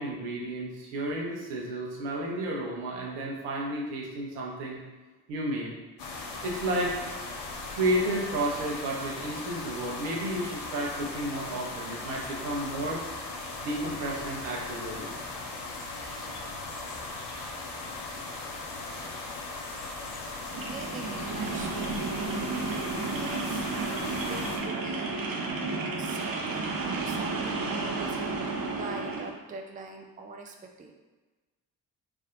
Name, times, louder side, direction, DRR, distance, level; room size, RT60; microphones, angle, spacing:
voice 1, 0.0-4.8 5.3-5.7 6.4-6.9 7.7-13.0 13.6-15.1, right 1 dB, 75° right, -2 dB, 1.0 m, -32 dB
sound 1, 6.0-24.6, left 3 dB, 55° left, 0.7 m, -38 dB
voice 2, 20.4-22.3 22.9-23.7 24.1-25.7 26.0-28.4 28.8-30.9, right 3 dB, 15° right, 3 dB, 0.5 m, -43 dB
sound 2, 20.5-29.3, right 3 dB, 45° right, 0.8 m, -32 dB
3.3 x 2.6 x 3.8 m, 1.2 s
hypercardioid pair, 40°, 49 cm